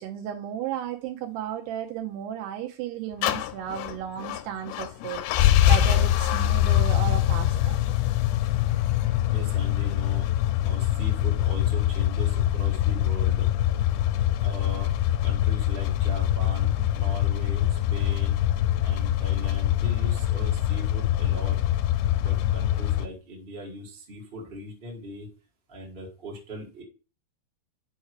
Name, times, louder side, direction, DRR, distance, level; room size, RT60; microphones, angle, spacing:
voice 1, 0.0-7.8, right 10 dB, 80° right, 2.7 m, -34 dB
sound 1, 3.2-23.1, left 12 dB, 85° left, 2.6 m, -24 dB
voice 2, 9.3-10.3 10.6-13.5 14.4-14.9 15.2-18.4 18.8-21.6 22.2-25.3 25.7-26.8, equal, 45° right, 0.6 m, -39 dB
6.5 x 4.6 x 6.1 m
omnidirectional pair, 5.1 m